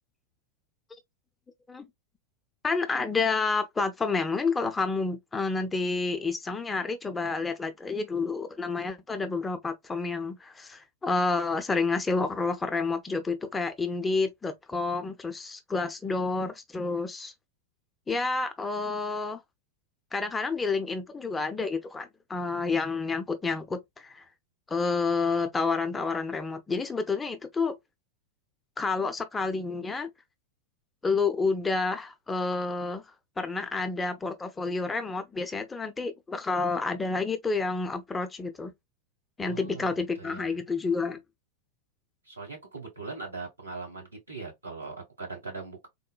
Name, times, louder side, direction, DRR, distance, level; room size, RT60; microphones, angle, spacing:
voice 1, 2.6-17.3 18.1-19.4 20.1-24.2 24.7-27.8 28.8-30.1 31.0-33.0 33.4-38.7 39.4-41.2, left 4 dB, 15° left, 0.5 m, -29 dB
voice 2, 39.4-40.5 42.2-45.9, right 4 dB, 80° right, 1.4 m, -40 dB
3.8 x 2.1 x 2.3 m
figure-of-eight pair, 90°, 0 cm